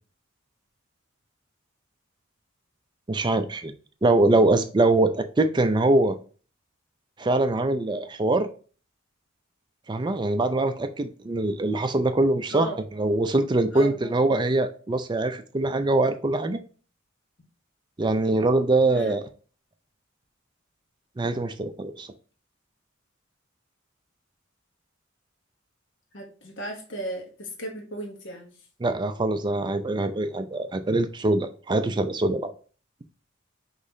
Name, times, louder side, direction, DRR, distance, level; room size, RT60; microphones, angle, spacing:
voice 1, 3.1-3.7 4.0-6.2 7.2-8.5 9.9-16.6 18.0-19.2 21.2-22.1 28.8-32.5, right 2 dB, 20° right, 8 dB, 0.4 m, -23 dB
voice 2, 13.7-14.1 18.9-19.2 26.1-28.5, right 1 dB, 60° left, 1 dB, 1.0 m, -36 dB
5.3 x 3.2 x 2.6 m, 0.39 s
head